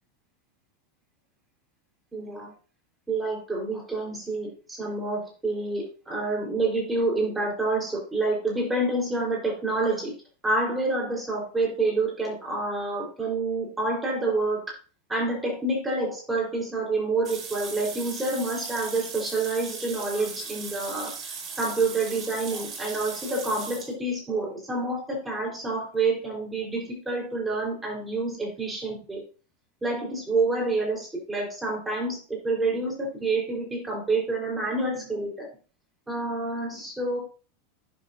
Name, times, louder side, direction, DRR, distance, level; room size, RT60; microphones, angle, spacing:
voice 1, 2.1-2.5 3.1-10.1 10.4-14.6 15.1-21.1 21.6-29.2 29.8-35.5 36.1-37.2, right 2 dB, 10° right, -1 dB, 3.9 m, -28 dB
sound 1, 17.2-23.9, right 5 dB, 35° right, 4.6 m, -38 dB
11.0 x 6.8 x 2.6 m, 0.36 s
hypercardioid pair, 120°, 0 cm